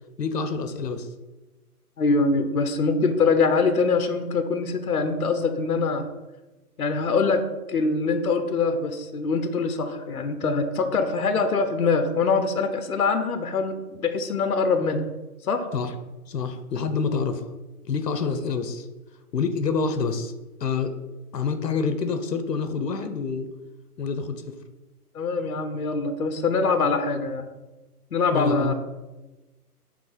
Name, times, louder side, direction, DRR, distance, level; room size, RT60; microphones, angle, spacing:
voice 1, 0.2-1.1 15.7-15.9 16.3-17.5 17.8-18.9 19.3-20.3 20.6-20.9 21.3-23.5 24.0-24.5 28.3-28.7, left 5 dB, 90° left, 8 dB, 0.9 m, -27 dB
voice 2, 2.0-6.1 6.8-15.0 15.4-15.7 25.1-27.5 28.1-28.7, left 4 dB, 65° left, 8 dB, 0.9 m, -23 dB
5.8 x 3.5 x 5.1 m, 1.1 s
hypercardioid pair, 180°, 47 cm